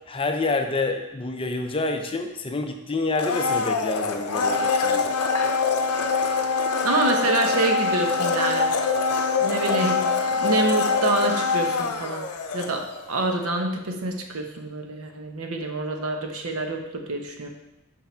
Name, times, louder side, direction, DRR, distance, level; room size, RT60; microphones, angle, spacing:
voice 1, 0.1-5.1, left 3 dB, 25° left, 4 dB, 0.6 m, -28 dB
Domestic sounds home sounds, 3.2-13.1 13.4-13.5, left 4 dB, 85° left, 0.6 m, -24 dB
voice 2, 6.8-8.7 9.4-12.3 12.5-17.5, right 2 dB, 70° right, 3 dB, 0.9 m, -27 dB
5.7 x 5.7 x 4.4 m, 0.94 s
head